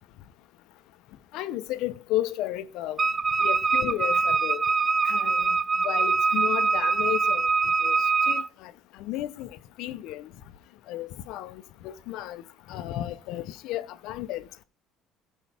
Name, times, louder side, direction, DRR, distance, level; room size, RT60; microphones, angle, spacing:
voice 1, 1.3-3.0 3.4-4.6 5.0-7.5 7.8-8.7 9.0-10.3 10.9-12.4 12.7-14.6, left 14 dB, 75° left, 0.9 m, -33 dB
Wind instrument woodwind instrument, 3.0-8.5, right 4 dB, 30° right, 0.5 m, -24 dB
15.0 x 5.6 x 3.6 m
supercardioid pair, 95°, 0 cm